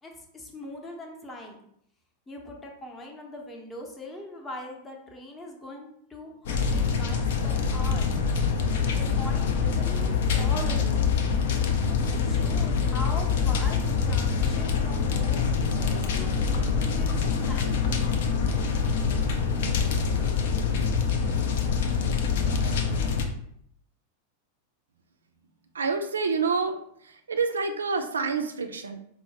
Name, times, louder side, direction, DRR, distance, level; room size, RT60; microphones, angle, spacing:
voice 1, 0.0-1.6 2.3-8.1 8.9-11.0 12.2-16.3 16.8-17.6, left 1 dB, 15° left, 0 dB, 0.7 m, -41 dB
sound 1, 6.5-23.3, left 5 dB, 55° left, 0.4 m, -25 dB
voice 2, 25.7-29.0, right 4 dB, 70° right, 7 dB, 0.4 m, -28 dB
4.4 x 2.1 x 2.9 m, 0.71 s
figure-of-eight pair, 90°, 0 cm